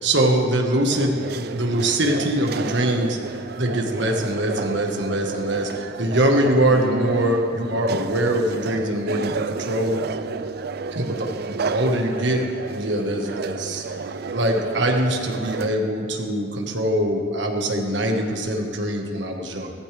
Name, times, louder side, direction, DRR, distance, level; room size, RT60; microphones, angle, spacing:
voice 1, 0.0-3.2 3.6-10.1 10.9-13.8 14.3-19.7, right 1 dB, 70° right, 2 dB, 1.6 m, -23 dB
sound 1, 0.9-15.7, right 4 dB, 55° right, 0.4 m, -31 dB
17.5 x 14.5 x 3.5 m, 2.4 s
head